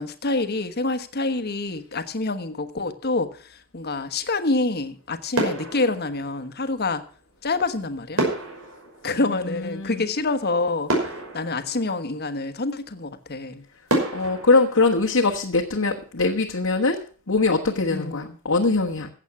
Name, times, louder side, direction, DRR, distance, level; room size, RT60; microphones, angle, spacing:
voice 1, 0.0-7.0 7.4-8.2 9.0-13.6 17.9-18.4, left 3 dB, 50° left, 10 dB, 1.3 m, -27 dB
sound 1, 4.7-5.0 5.3-6.8 8.2-10.1 10.5-10.6 10.9-12.5 13.0-13.1 13.9-15.8 16.1-16.3, right 1 dB, 75° right, 5.8 m, -29 dB
voice 2, 9.3-10.1 14.1-17.0 17.3-19.1, left 3 dB, 75° left, 0 dB, 1.4 m, -22 dB
15.0 x 8.2 x 5.9 m, 0.40 s
head